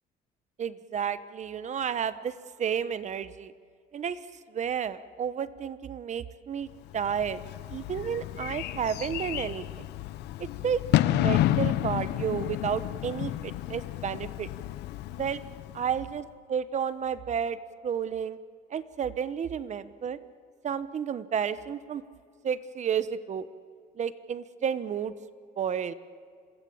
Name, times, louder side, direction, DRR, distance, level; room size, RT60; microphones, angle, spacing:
voice 1, 0.6-2.3 2.6-3.5 3.9-4.2 4.5-6.7 6.9-7.4 7.7-9.9 10.6-14.5 15.2-15.4 15.7-17.6 17.8-18.4 18.7-20.2 20.6-22.0 22.4-23.5 24.0-25.1 25.6-25.9, right 8 dB, 45° right, 14 dB, 1.1 m, -31 dB
Bird / Fireworks, 6.9-16.1, left 14 dB, 85° left, 0.9 m, -30 dB
26.5 x 20.0 x 8.7 m, 2.2 s
cardioid pair, 110°, 17 cm